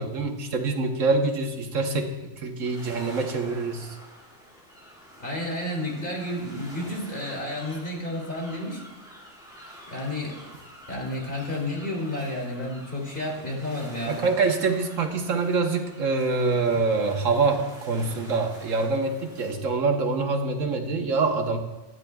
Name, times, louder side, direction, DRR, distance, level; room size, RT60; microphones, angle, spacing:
voice 1, 0.0-4.0 14.1-21.6, right 3 dB, 85° right, 4 dB, 1.5 m, -25 dB
sound 1, 2.6-19.5, equal, 5° right, 2.4 m, -47 dB
voice 2, 5.2-8.8 9.9-10.4 10.9-14.2, left 1 dB, 40° left, -2 dB, 2.9 m, -31 dB
22.0 x 9.7 x 2.3 m, 1.1 s
omnidirectional pair, 1.3 m